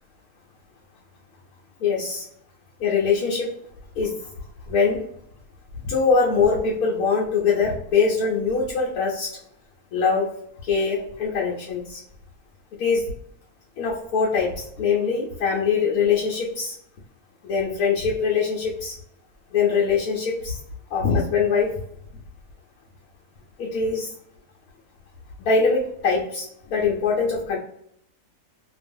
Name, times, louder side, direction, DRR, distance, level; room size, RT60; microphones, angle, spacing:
voice 1, 1.8-2.2 2.8-3.5 4.0-4.1 4.7-5.0 5.8-9.3 9.9-10.3 10.6-12.0 12.8-13.0 13.8-16.8 17.4-18.9 19.5-20.6 20.9-21.7 23.6-24.1 25.4-27.6, left 5 dB, 80° left, -3 dB, 1.1 m, -22 dB
2.5 x 2.3 x 2.5 m, 0.73 s
omnidirectional pair, 1.6 m